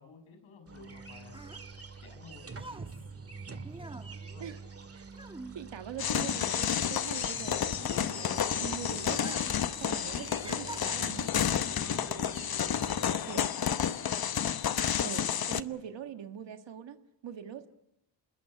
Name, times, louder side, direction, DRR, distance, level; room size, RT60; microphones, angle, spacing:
voice 1, 0.0-1.5 2.0-2.6 3.5-3.6 4.3-4.5 11.7-12.0, left 4 dB, 85° left, 6 dB, 6.3 m, -55 dB
sound 1, 0.7-13.2, right 4 dB, 30° right, 2.0 m, -46 dB
sound 2, 1.2-6.2 6.4-8.6 9.1-9.7 10.0-11.4 12.1-12.3, right 2 dB, 10° right, 1.2 m, -47 dB
voice 2, 5.5-9.5 9.8-11.3 13.1-13.5 15.0-17.7, right 9 dB, 65° right, 7 dB, 1.7 m, -43 dB
sound 3, 6.0-15.6, left 9 dB, 50° left, 1.0 m, -30 dB
27.0 x 21.0 x 8.7 m, 0.85 s
cardioid pair, 85°, 47 cm